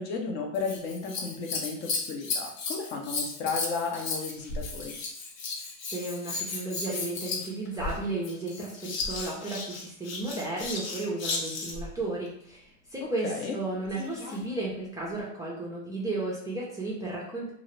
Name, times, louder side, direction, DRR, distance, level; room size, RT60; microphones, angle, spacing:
voice 1, 0.0-4.9 13.0-13.5, left 4 dB, 35° left, 2 dB, 0.6 m, -34 dB
Scissors, 0.5-11.9 13.9-14.5 15.2-15.3, left 3 dB, 85° left, 0.9 m, -35 dB
voice 2, 5.9-17.5, right 2 dB, 10° right, -5 dB, 0.5 m, -34 dB
2.7 x 2.5 x 3.1 m, 0.70 s
supercardioid pair, 120°, 39 cm